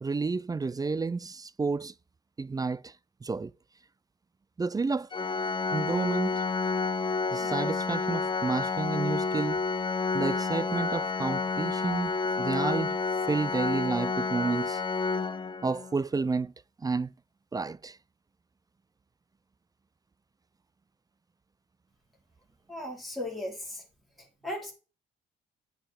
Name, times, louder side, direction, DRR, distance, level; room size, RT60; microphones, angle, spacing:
voice 1, 0.0-1.9 2.4-2.9 3.2-3.5 4.6-5.1 5.7-6.4 7.3-9.6 10.1-13.0 13.3-14.8 15.6-16.5 16.8-17.1 17.5-18.0, right 4 dB, 20° right, 0.4 m, -30 dB
Organ, 5.1-16.0, left 4 dB, 25° left, 0.7 m, -30 dB
voice 2, 22.7-23.9 24.2-24.7, left 1 dB, ahead, 3.9 m, -37 dB
8.7 x 4.7 x 7.4 m
cardioid pair, 90°, 20 cm